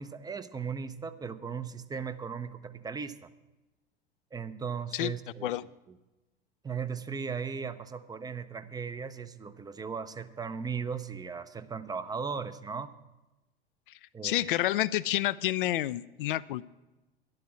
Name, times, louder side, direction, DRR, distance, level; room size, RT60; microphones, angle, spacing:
voice 1, 0.0-3.3 4.3-5.7 6.6-12.9 14.1-14.6, right 6 dB, 15° right, 12 dB, 0.6 m, -37 dB
voice 2, 14.2-16.6, left 15 dB, 60° left, 15 dB, 0.5 m, -29 dB
12.0 x 11.5 x 6.2 m, 1.1 s
figure-of-eight pair, 80°, 31 cm